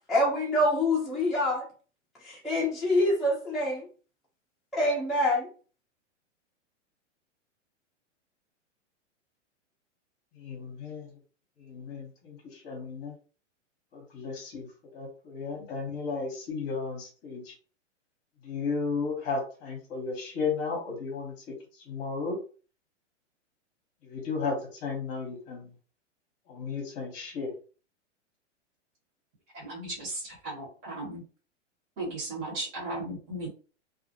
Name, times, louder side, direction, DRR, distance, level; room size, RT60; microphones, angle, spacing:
voice 1, 0.1-1.6 2.3-3.9 4.7-5.5, left 1 dB, ahead, -7 dB, 0.6 m, -25 dB
voice 2, 10.4-11.1 11.6-13.1 13.9-17.5 18.4-21.6 21.9-22.4 24.0-25.7 26.5-27.5, left 4 dB, 30° left, 0 dB, 0.9 m, -34 dB
voice 3, 29.5-31.2 32.0-33.5, right 2 dB, 30° right, -4 dB, 1.0 m, -36 dB
2.4 x 2.0 x 2.7 m, 0.37 s
hypercardioid pair, 135°, 37 cm